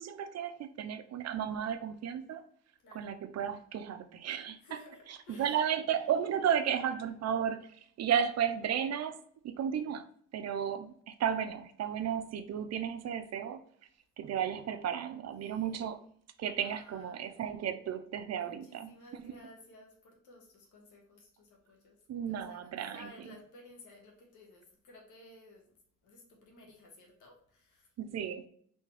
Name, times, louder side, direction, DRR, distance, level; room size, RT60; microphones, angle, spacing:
voice 1, 0.0-2.4 2.9-4.6 5.1-7.6 8.0-10.1 10.3-13.6 14.2-16.0 16.4-18.9 22.1-23.1 28.0-28.4, right 8 dB, 60° right, 0.6 m, -33 dB
voice 2, 2.8-3.2 4.6-5.6 15.4-15.9 16.6-17.3 18.3-22.0 22.3-25.8 26.0-27.9, left 2 dB, 80° left, 1.7 m, -56 dB
4.2 x 3.4 x 3.3 m
cardioid pair, 90°, 30 cm